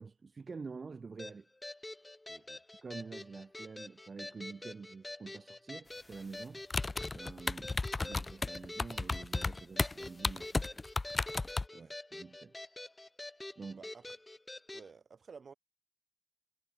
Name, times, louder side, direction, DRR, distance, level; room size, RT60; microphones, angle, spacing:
voice 1, 0.0-1.5 2.8-6.6 7.1-10.8 11.7-12.5 13.6-13.8, right 4 dB, 60° right, 1.9 m, -47 dB
sound 1, 1.2-14.9, left 2 dB, 20° left, 4.6 m, -47 dB
voice 2, 2.3-2.6 11.7-12.0 13.7-14.1 14.7-15.5, right 5 dB, 75° right, 3.7 m, -54 dB
sound 2, 6.7-11.7, left 3 dB, 35° left, 0.4 m, -33 dB
wide cardioid pair, 115°, 0 cm